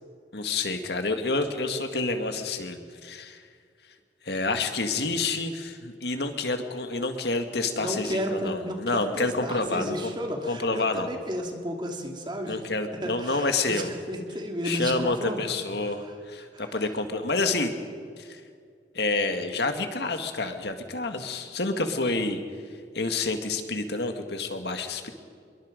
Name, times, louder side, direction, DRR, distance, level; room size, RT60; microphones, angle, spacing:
voice 1, 0.3-3.4 4.2-10.1 10.5-11.2 12.5-13.9 14.6-17.7 18.2-18.4 18.9-22.4 22.9-25.1, left 3 dB, 65° left, 6 dB, 1.9 m, -28 dB
voice 2, 7.8-12.6 13.0-15.5 16.5-16.6, equal, 25° right, 2 dB, 2.7 m, -33 dB
26.0 x 23.0 x 5.2 m, 2.2 s
head